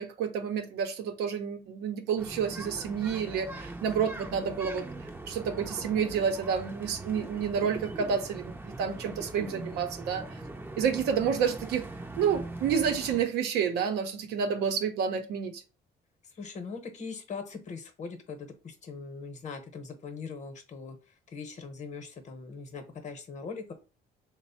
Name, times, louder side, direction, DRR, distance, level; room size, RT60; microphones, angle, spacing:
voice 1, 0.0-4.9 5.3-10.4 10.8-11.9 12.2-15.6, right 7 dB, 80° right, 0.7 m, -29 dB
sound 1, 2.2-13.2, right 2 dB, 10° right, 0.5 m, -41 dB
voice 2, 16.2-23.7, left 5 dB, 45° left, 0.9 m, -41 dB
3.2 x 2.1 x 4.2 m
cardioid pair, 110°, 17 cm